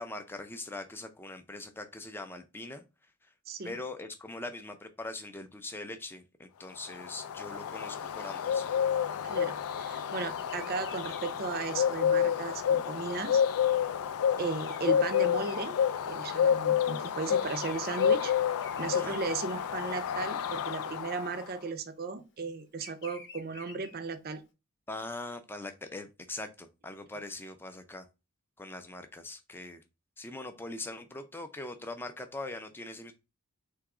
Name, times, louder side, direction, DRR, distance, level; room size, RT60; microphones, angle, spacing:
voice 1, 0.0-2.8 3.6-8.7 18.9-19.2 24.9-28.1 28.6-29.8 30.2-33.1, left 2 dB, 10° left, 0.4 m, -42 dB
Bird, 6.8-21.5, left 8 dB, 70° left, 0.4 m, -29 dB
voice 2, 9.2-13.4 14.4-15.8 16.1-18.3 18.8-24.4, right 4 dB, 45° right, 0.5 m, -36 dB
Bird vocalization bird call bird song, 10.1-16.5 16.8-19.7 20.1-20.5 21.5-24.4, left 4 dB, 55° left, 0.8 m, -52 dB
3.5 x 2.8 x 4.7 m
head